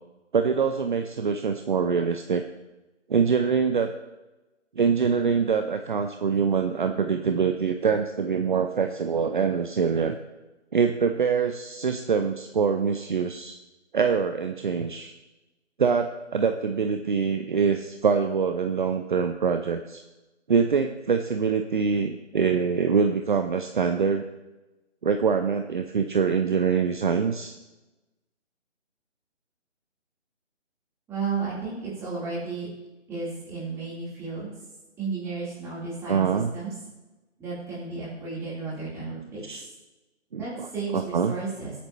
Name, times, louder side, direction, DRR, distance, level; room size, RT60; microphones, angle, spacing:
voice 1, 0.3-2.5 3.1-3.9 4.8-10.2 10.7-13.6 13.9-15.1 15.8-20.0 20.5-24.2 25.0-27.5 36.1-36.5 39.4-39.6 40.3-41.3, right 6 dB, 45° right, 6 dB, 0.7 m, -24 dB
voice 2, 31.1-32.7 33.1-34.5 35.0-36.3 36.5-36.7 37.4-39.4 40.3-41.7, right 4 dB, 10° right, -8 dB, 3.7 m, -33 dB
22.5 x 8.9 x 3.1 m, 1.1 s
figure-of-eight pair, 155°, 36 cm